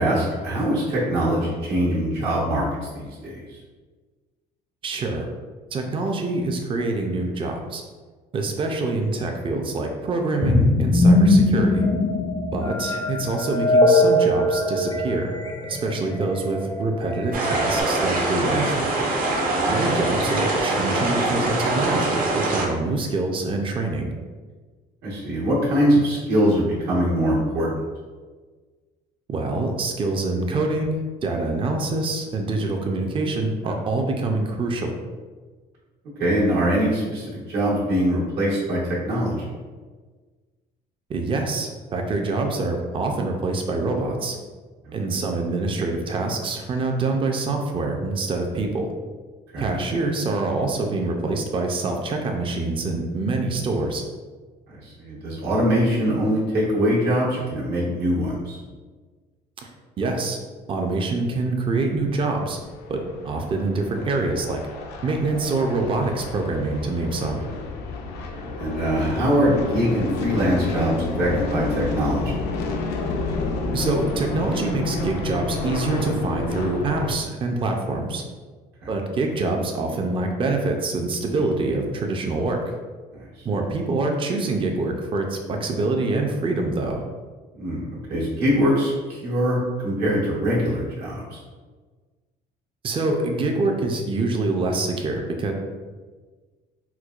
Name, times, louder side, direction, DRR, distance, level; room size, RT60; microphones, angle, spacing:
voice 1, 0.0-2.7 2.9-3.4 19.5-19.8 25.0-27.7 36.2-39.4 44.8-45.0 49.5-49.8 54.8-58.6 68.3-72.3 78.8-78.9 83.1-83.3 87.5-91.4, equal, 75° right, -6 dB, 1.2 m, -23 dB
voice 2, 4.8-5.3 5.7-7.8 8.3-11.9 12.5-15.4 15.6-18.9 19.7-24.1 29.3-34.9 41.1-44.4 44.9-48.9 49.6-54.0 60.0-60.4 60.7-62.6 62.9-64.6 65.0-67.4 73.7-78.2 78.9-82.6 83.4-87.0 92.8-95.5, right 3 dB, 30° right, 3 dB, 0.4 m, -25 dB
sound 1, 10.4-17.8, left 1 dB, 25° left, 0.4 m, -20 dB
sound 2, 17.3-22.6, right 2 dB, 55° right, 0.8 m, -23 dB
sound 3, 62.4-77.2, left 3 dB, 85° left, 0.5 m, -30 dB
4.4 x 2.1 x 2.4 m, 1.4 s
cardioid pair, 110°, 17 cm